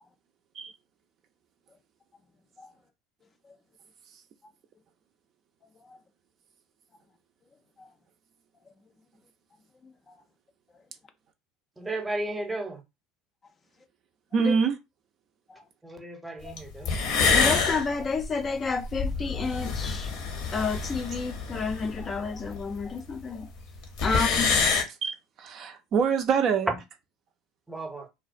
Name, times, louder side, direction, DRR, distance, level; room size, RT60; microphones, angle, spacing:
voice 1, 11.8-12.8 15.8-16.9 27.7-28.1, right 2 dB, 10° right, 0.7 m, -34 dB
voice 2, 14.3-14.8 24.7-26.7, right 6 dB, 50° right, 0.4 m, -25 dB
sound 1, 16.6-16.7 16.9-22.9 23.1-23.2 23.4-23.5 23.8-24.8, left 5 dB, 65° left, 0.7 m, -27 dB
voice 3, 17.3-20.1 20.5-23.5 24.0-24.5 27.7-27.8, left 4 dB, 30° left, 0.4 m, -30 dB
2.3 x 2.1 x 2.5 m
hypercardioid pair, 80°, 0 cm